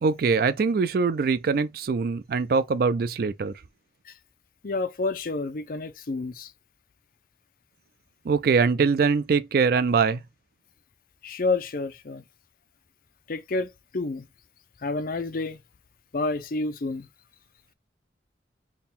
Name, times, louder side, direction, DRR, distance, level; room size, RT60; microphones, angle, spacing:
voice 1, 0.0-3.5 8.3-10.2, right 5 dB, 55° right, 0.4 m, -23 dB
voice 2, 4.6-6.5 11.2-12.2 13.3-14.2 14.8-15.6 16.1-17.1, left 3 dB, 50° left, 0.5 m, -29 dB
3.6 x 2.3 x 4.1 m
head